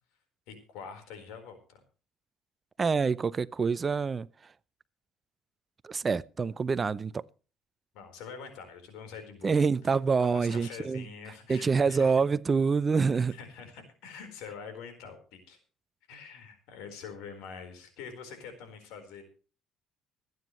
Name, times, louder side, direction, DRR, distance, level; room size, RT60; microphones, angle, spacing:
voice 1, 0.5-1.8 7.9-12.2 13.3-15.6 16.1-19.2, left 6 dB, 85° left, 4.2 m, -45 dB
voice 2, 2.8-4.3 5.8-7.2 9.4-11.0 11.5-13.4, right 5 dB, 30° right, 0.6 m, -26 dB
25.5 x 9.4 x 3.1 m
cardioid pair, 95°, 0 cm